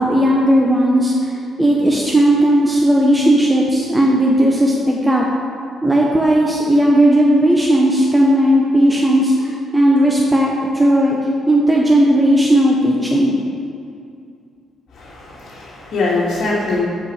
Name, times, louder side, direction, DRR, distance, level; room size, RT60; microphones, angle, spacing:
voice 1, 0.0-5.3 5.8-11.2 11.5-13.3, right 1 dB, 10° right, -3 dB, 1.2 m, -15 dB
voice 2, 14.9-16.8, left 3 dB, 60° left, -10 dB, 2.6 m, -22 dB
13.0 x 5.6 x 5.1 m, 2.4 s
cardioid pair, 90°, 0 cm